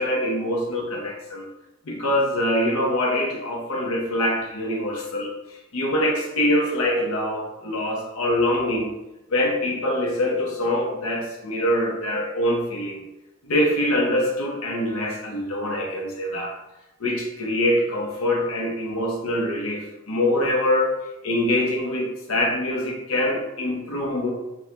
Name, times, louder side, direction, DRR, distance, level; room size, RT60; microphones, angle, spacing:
voice 1, 0.0-1.5 1.8-8.9 9.3-13.0 13.4-16.5 17.0-21.0 21.2-24.3, left 1 dB, 80° left, 0 dB, 0.7 m, -24 dB
3.4 x 2.3 x 2.8 m, 0.98 s
head